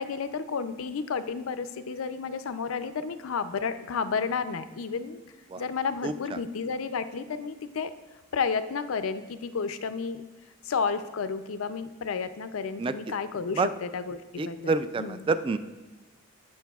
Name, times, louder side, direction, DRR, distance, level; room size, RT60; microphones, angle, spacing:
voice 1, 0.0-5.2 5.6-7.9 8.3-10.2 10.7-15.3, left 5 dB, 85° left, 11 dB, 0.5 m, -31 dB
voice 2, 14.4-15.6, right 3 dB, 25° right, 12 dB, 0.3 m, -27 dB
16.0 x 7.3 x 2.4 m, 1.1 s
head